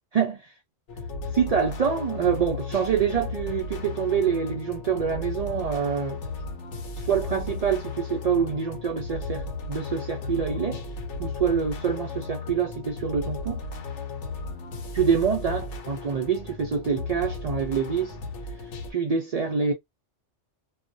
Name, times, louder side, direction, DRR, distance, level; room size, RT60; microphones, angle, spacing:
voice 1, 0.1-0.5 1.3-6.2 7.0-10.8 11.2-13.6 14.9-18.2 18.9-19.7, right 7 dB, 80° right, 0.3 m, -26 dB
sound 1, 0.9-18.9, left 3 dB, 70° left, 0.9 m, -35 dB
2.4 x 2.0 x 2.5 m
omnidirectional pair, 1.2 m